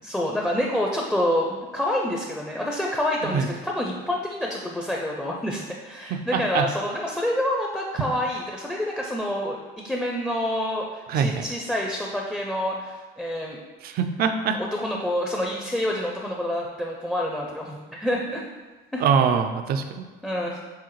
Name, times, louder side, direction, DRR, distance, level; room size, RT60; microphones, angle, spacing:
voice 1, 0.0-9.6 9.8-13.6 14.6-18.4 18.9-19.1 20.2-20.6, left 1 dB, 5° left, 0 dB, 0.4 m, -27 dB
voice 2, 6.1-6.7 11.1-11.4 13.8-14.6 19.0-20.1, right 6 dB, 65° right, 7 dB, 0.4 m, -23 dB
4.8 x 3.5 x 3.1 m, 1.3 s
cardioid pair, 110°, 17 cm